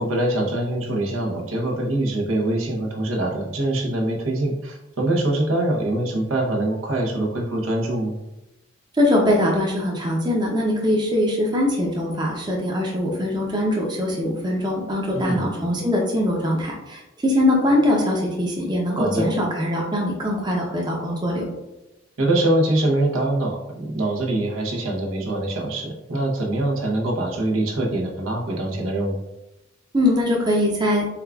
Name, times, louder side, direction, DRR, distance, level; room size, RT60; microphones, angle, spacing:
voice 1, 0.0-8.1 15.1-15.5 19.0-19.3 22.2-29.2, right 1 dB, 80° right, 0 dB, 0.8 m, -24 dB
voice 2, 9.0-21.5 29.9-31.0, left 1 dB, 20° right, -2 dB, 0.6 m, -22 dB
6.8 x 2.4 x 2.3 m, 0.96 s
head